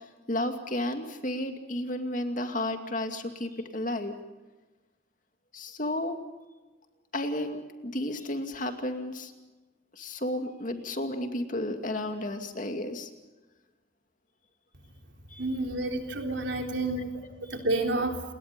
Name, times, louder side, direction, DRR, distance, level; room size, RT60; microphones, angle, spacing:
voice 1, 0.3-4.2 5.5-6.2 7.1-9.3 9.9-13.1 15.3-15.5 17.0-17.1 17.4-17.5, left 1 dB, 40° left, 6 dB, 2.4 m, -32 dB
voice 2, 15.4-17.0 17.5-18.2, right 2 dB, 70° right, 3 dB, 3.7 m, -29 dB
29.0 x 21.5 x 5.3 m, 1.2 s
head